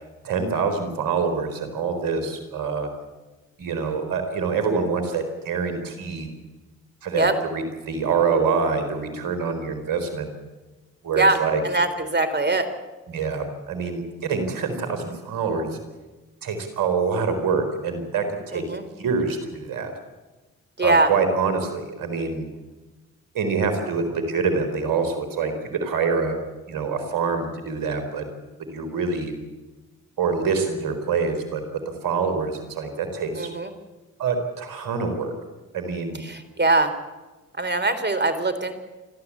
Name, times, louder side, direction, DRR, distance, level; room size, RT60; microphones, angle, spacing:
voice 1, 0.0-2.9 3.6-6.3 7.0-7.3 7.5-10.3 11.0-11.6 13.1-15.7 16.4-18.6 19.0-19.9 20.8-22.5 23.3-25.5 25.8-26.3 26.7-28.2 28.7-29.3 30.2-31.6 32.0-33.5 34.2-35.3 35.7-36.2, right 5 dB, 70° right, 7 dB, 4.4 m, -25 dB
voice 2, 11.1-12.7 18.5-18.8 20.8-21.1 33.4-33.7 36.2-36.9 37.6-38.7, right 2 dB, 30° right, 10 dB, 3.6 m, -22 dB
29.0 x 13.0 x 8.7 m, 1.2 s
hypercardioid pair, 45°, 34 cm